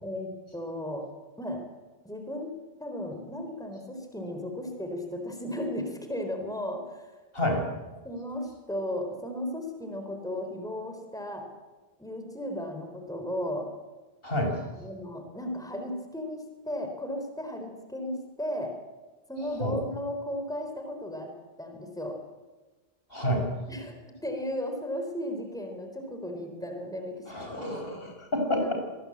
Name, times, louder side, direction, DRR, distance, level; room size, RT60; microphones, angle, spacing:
voice 1, 0.0-1.1 1.4-1.6 2.0-7.1 7.4-7.6 8.0-11.4 12.0-13.7 14.7-18.7 19.3-21.3 21.6-22.2 23.7-27.6, left 1 dB, 5° left, 4 dB, 3.8 m, -35 dB
voice 2, 14.2-14.6 19.6-19.8 23.1-23.5 27.3-28.7, left 1 dB, 65° left, 3 dB, 6.3 m, -28 dB
26.5 x 19.5 x 8.7 m, 1.2 s
omnidirectional pair, 1.0 m